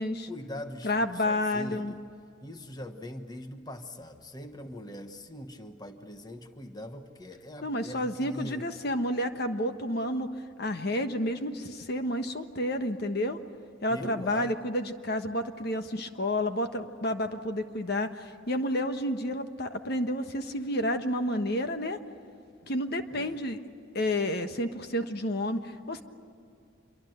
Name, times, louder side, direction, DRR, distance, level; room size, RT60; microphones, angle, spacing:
voice 1, 0.3-2.0 2.4-8.7 13.9-14.5 23.1-23.4, left 1 dB, 20° left, 6 dB, 1.2 m, -42 dB
voice 2, 0.8-1.9 7.6-10.3 10.6-13.4 13.8-22.0 22.7-23.6 23.9-26.0, left 1 dB, 55° left, 7 dB, 1.3 m, -30 dB
27.0 x 24.0 x 8.0 m, 2.4 s
head